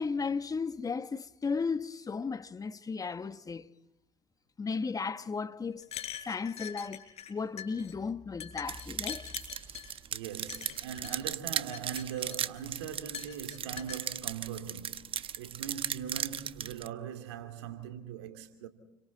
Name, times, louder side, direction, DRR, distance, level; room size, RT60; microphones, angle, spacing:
voice 1, 0.0-3.7 4.6-7.0 7.3-9.3, left 5 dB, 25° left, 1.3 m, -35 dB
sound 1, 5.8-7.3 7.6-7.9 8.4-9.9 10.5-11.2 11.6-12.6 13.1-14.0, left 10 dB, 50° left, 4.3 m, -43 dB
sound 2, 8.7-16.9, right 9 dB, 40° right, 1.0 m, -37 dB
voice 2, 10.1-18.7, right 9 dB, 85° right, 2.6 m, -41 dB
29.5 x 24.0 x 4.2 m
hypercardioid pair, 75°, 14 cm